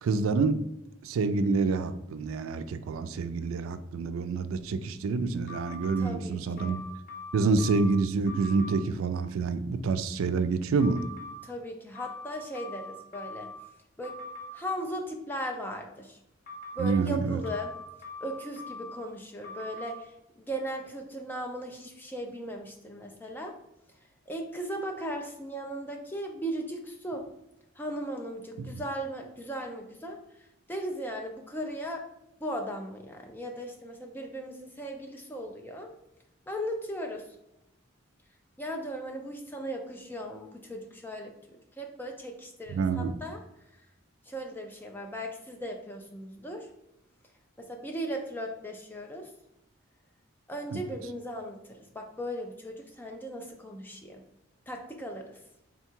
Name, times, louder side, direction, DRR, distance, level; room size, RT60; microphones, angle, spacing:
voice 1, 0.0-0.6 1.0-6.8 7.3-11.0 16.8-17.4 42.7-43.1 50.7-50.8, right 4 dB, 90° right, 10 dB, 0.3 m, -27 dB
sound 1, 5.5-6.0 6.6-7.9 8.3-8.7 10.8-11.3 11.9-13.6 14.0-14.5 16.5-16.9 17.4-19.0 19.4-19.9, left 4 dB, 40° left, 0.9 m, -42 dB
voice 2, 6.0-6.8 11.4-13.5 14.0-14.2 14.5-16.2 16.7-17.7 18.2-23.5 24.3-27.2 27.8-32.0 32.4-35.9 36.5-37.3 38.6-43.4 44.3-46.7 47.6-49.3 50.5-54.2 54.7-55.4, equal, 10° left, 2 dB, 0.4 m, -37 dB
3.7 x 2.3 x 4.4 m, 0.88 s
head